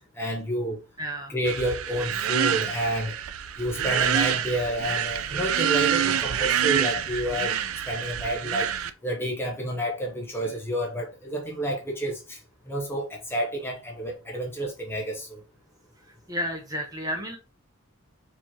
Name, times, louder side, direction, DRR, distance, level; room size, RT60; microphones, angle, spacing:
voice 1, 0.2-0.8 1.3-3.1 3.6-7.5 7.9-8.7 9.0-12.4 12.7-15.4, equal, 10° left, 0.7 m, -29 dB
voice 2, 1.0-1.3 16.3-17.4, equal, 15° right, 0.8 m, -31 dB
sound 1, 1.5-8.9, right 9 dB, 75° right, 0.4 m, -27 dB
4.6 x 3.0 x 2.7 m
head